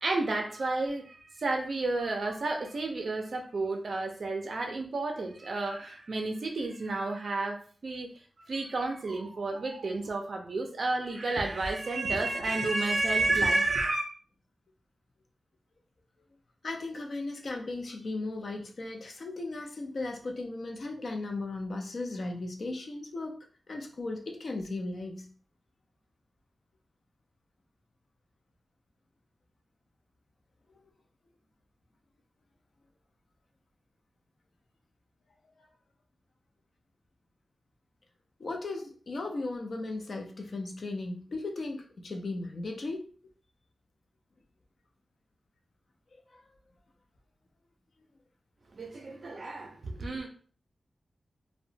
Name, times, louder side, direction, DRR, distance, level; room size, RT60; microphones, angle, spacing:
voice 1, 0.0-8.1 8.5-14.1 48.7-50.3, right 2 dB, 50° right, 0.4 m, -31 dB
voice 2, 16.6-23.3 23.7-25.3 38.4-43.1 46.1-46.4, left 2 dB, 50° left, 0.4 m, -36 dB
2.8 x 2.1 x 2.6 m
wide cardioid pair, 170°, 0 cm